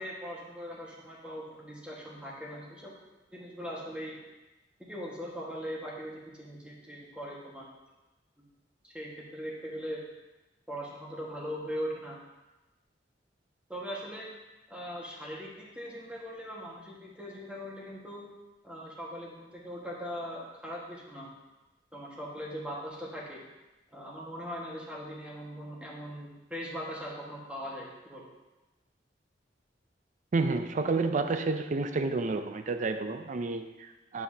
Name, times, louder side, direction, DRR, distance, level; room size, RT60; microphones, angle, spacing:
voice 1, 0.0-2.9 3.3-4.2 4.8-7.7 8.4-8.5 8.8-10.0 10.7-12.2 13.7-14.3 14.7-18.3 18.6-21.3 21.9-23.4 23.9-28.3, equal, 5° right, -4 dB, 1.5 m, -40 dB
voice 2, 30.3-34.2, right 3 dB, 45° right, 8 dB, 0.4 m, -30 dB
10.0 x 5.5 x 2.8 m, 1.1 s
head